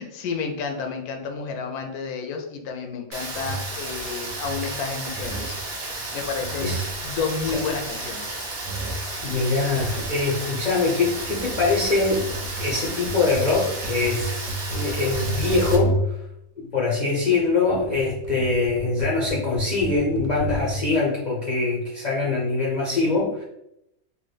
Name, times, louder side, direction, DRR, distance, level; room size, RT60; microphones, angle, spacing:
voice 1, 0.0-5.6 6.1-6.7 7.0-8.3, left 5 dB, 90° left, 4 dB, 1.1 m, -31 dB
Rain, 3.1-15.8, right 2 dB, 45° right, 0.7 m, -33 dB
sound 1, 3.3-3.8 4.2-4.8 5.1-5.7 6.2-8.2 8.6-9.2 9.7-10.2 10.9-16.3 17.3-21.0, right 1 dB, 70° right, 0.9 m, -32 dB
voice 2, 8.8-12.2 12.6-16.0 16.6-23.4, left 3 dB, 65° left, -4 dB, 0.4 m, -23 dB
3.3 x 2.2 x 3.2 m, 0.81 s
omnidirectional pair, 1.5 m